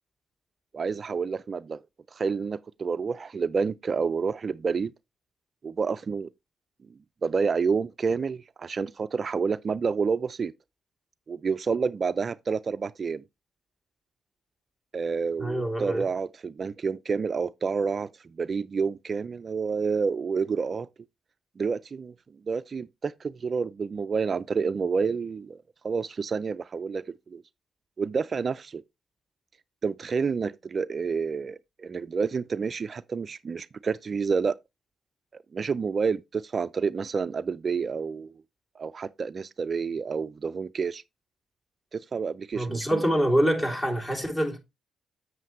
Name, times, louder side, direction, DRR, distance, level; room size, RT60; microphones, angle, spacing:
voice 1, 0.7-1.8 2.1-4.9 5.6-6.3 7.2-10.5 11.3-13.2 14.9-20.9 21.6-22.1 22.5-27.4 28.0-28.8 29.8-34.5 35.3-38.3 38.8-41.0 41.9-43.0, right 5 dB, 45° right, 0.3 m, -29 dB
voice 2, 15.4-16.1 42.5-44.6, equal, 25° left, 2.9 m, -25 dB
7.8 x 7.5 x 3.0 m
supercardioid pair, 55°, 0 cm